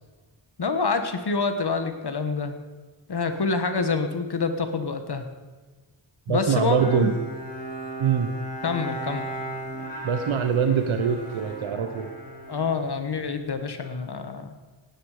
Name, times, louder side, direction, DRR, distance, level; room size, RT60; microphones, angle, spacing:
voice 1, 0.6-2.6 3.1-5.3 6.3-7.1 8.6-9.2 12.5-14.6, left 4 dB, 55° left, 8 dB, 1.4 m, -27 dB
voice 2, 6.3-7.1 8.0-8.3 10.0-12.1, right 7 dB, 90° right, 7 dB, 1.0 m, -23 dB
Bowed string instrument, 6.8-13.5, right 2 dB, 15° left, 4.4 m, -36 dB
18.0 x 10.0 x 5.0 m, 1.3 s
cardioid pair, 60°, 47 cm